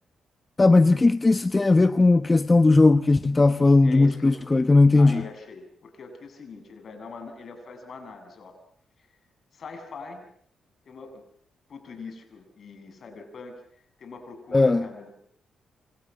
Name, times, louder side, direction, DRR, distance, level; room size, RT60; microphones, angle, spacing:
voice 1, 0.6-5.2 14.5-14.8, left 3 dB, 30° left, 1.1 m, -18 dB
voice 2, 3.8-4.4 4.9-8.6 9.5-10.2 10.9-11.2 11.7-13.6 14.0-15.1, left 4 dB, 60° left, 7.4 m, -42 dB
28.0 x 27.5 x 7.6 m
hypercardioid pair, 45°, 0 cm